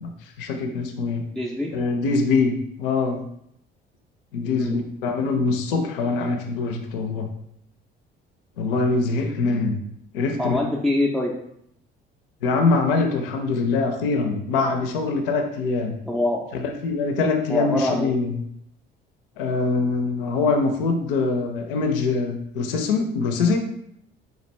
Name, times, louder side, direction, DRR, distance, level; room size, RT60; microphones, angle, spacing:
voice 1, 0.0-1.3 1.7-3.2 4.3-7.3 8.6-9.8 10.1-10.6 12.4-16.0 16.6-18.4 19.4-23.6, left 4 dB, 70° left, 5 dB, 0.5 m, -23 dB
voice 2, 1.3-1.7 4.5-4.8 10.4-11.3 16.1-16.4 17.5-18.1, left 1 dB, ahead, -3 dB, 0.4 m, -24 dB
4.2 x 2.4 x 3.2 m, 0.73 s
figure-of-eight pair, 50°, 29 cm